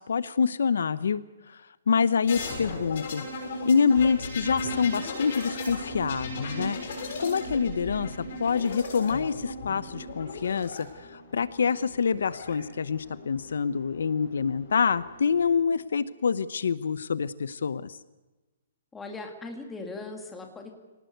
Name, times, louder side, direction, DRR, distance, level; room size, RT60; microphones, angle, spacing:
voice 1, 0.0-1.6 1.9-3.2 3.6-6.8 7.2-18.0, left 6 dB, 70° left, 16 dB, 0.9 m, -26 dB
sound 1, 2.3-10.8 11.9-12.5, left 1 dB, 40° left, 6.8 m, -36 dB
sound 2, 2.3-15.8, left 2 dB, 20° left, 7.3 m, -50 dB
voice 2, 18.9-20.7, left 3 dB, 5° left, 3 dB, 2.0 m, -39 dB
25.0 x 18.5 x 8.0 m, 1.1 s
hypercardioid pair, 180°, 0 cm